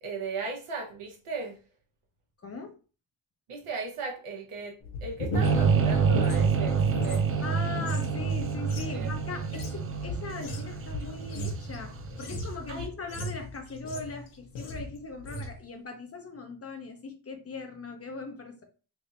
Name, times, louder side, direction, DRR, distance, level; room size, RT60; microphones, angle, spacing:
voice 1, 0.0-1.6 3.5-7.3 8.9-9.1 12.7-12.9, right 4 dB, 85° right, 1.1 m, -37 dB
voice 2, 2.4-2.7 7.4-18.6, left 4 dB, 30° left, 0.5 m, -39 dB
sound 1, 4.8-7.2 7.5-14.2 14.6-14.9 15.2-15.6, equal, 75° left, 1.1 m, -35 dB
sound 2, 5.4-12.5, right 6 dB, 30° right, 0.3 m, -27 dB
3.4 x 2.5 x 4.1 m
wide cardioid pair, 180°, 50 cm